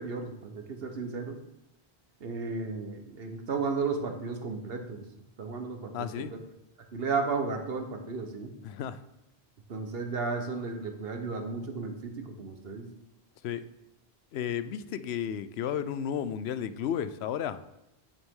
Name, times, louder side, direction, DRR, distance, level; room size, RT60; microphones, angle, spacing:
voice 1, 0.0-1.4 2.2-5.1 5.4-6.3 6.9-8.5 9.7-12.9, right 4 dB, 70° right, 5 dB, 1.2 m, -34 dB
voice 2, 5.9-6.3 8.6-9.0 13.4-13.7 14.3-17.6, left 9 dB, 85° left, 13 dB, 0.8 m, -33 dB
8.9 x 6.9 x 3.7 m, 0.86 s
omnidirectional pair, 1.0 m